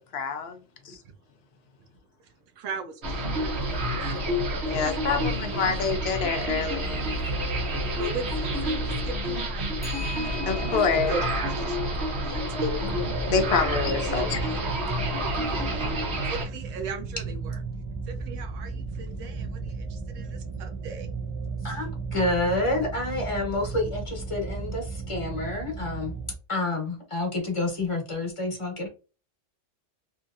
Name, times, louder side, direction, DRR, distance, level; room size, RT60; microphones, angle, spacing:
voice 1, 0.1-0.6 0.8-1.0 4.7-7.1 10.5-11.2 13.3-14.4 14.7-14.8, left 5 dB, 65° left, 0.8 m, -27 dB
voice 2, 2.6-4.3 4.7-5.8 8.0-9.7 10.2-11.2 11.5-11.8 12.5-12.9 14.1-14.6 14.9-15.0 15.5-16.0 16.2-17.6 18.1-21.1, right 4 dB, 90° right, 1.0 m, -38 dB
sound 1, 3.0-16.5, equal, 65° right, 1.2 m, -29 dB
Clock, 3.6-3.7 4.1-4.2 7.0-7.3 9.8-14.0, equal, 10° left, 0.6 m, -43 dB
sound 2, 12.8-26.3, right 4 dB, 35° right, 0.5 m, -35 dB
voice 3, 21.6-26.1 26.5-28.9, left 2 dB, 30° left, 1.0 m, -28 dB
2.9 x 2.8 x 2.4 m
omnidirectional pair, 1.3 m